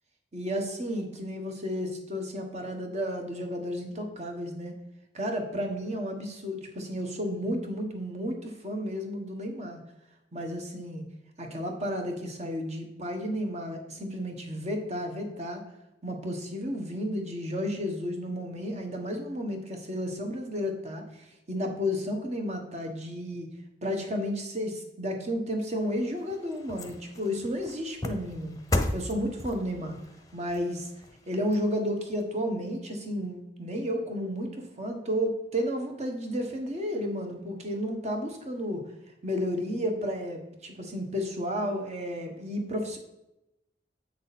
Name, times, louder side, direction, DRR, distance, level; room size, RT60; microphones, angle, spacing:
voice 1, 0.3-4.7 5.1-9.8 10.3-11.0 11.4-15.6 16.0-23.5 23.8-28.6 28.9-29.9 30.3-30.9 31.3-38.8 39.2-43.0, equal, 40° right, 3 dB, 1.4 m, -32 dB
sound 1, 25.7-32.2 32.7-32.8, left 1 dB, 20° left, 0.8 m, -36 dB
8.3 x 6.2 x 4.2 m, 0.88 s
head